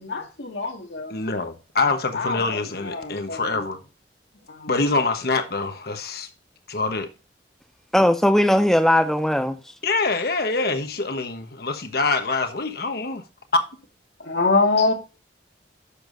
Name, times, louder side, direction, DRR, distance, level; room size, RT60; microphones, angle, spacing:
voice 1, 0.0-1.2 2.1-3.7 4.5-4.7 14.2-14.9, left 3 dB, 80° left, 2.0 m, -25 dB
voice 2, 1.1-3.8 4.7-6.3 6.7-7.1 9.8-13.2 13.5-13.6, left 3 dB, 60° left, 1.2 m, -25 dB
voice 3, 7.9-9.6, left 1 dB, ahead, 0.5 m, -18 dB
11.0 x 7.1 x 2.6 m
head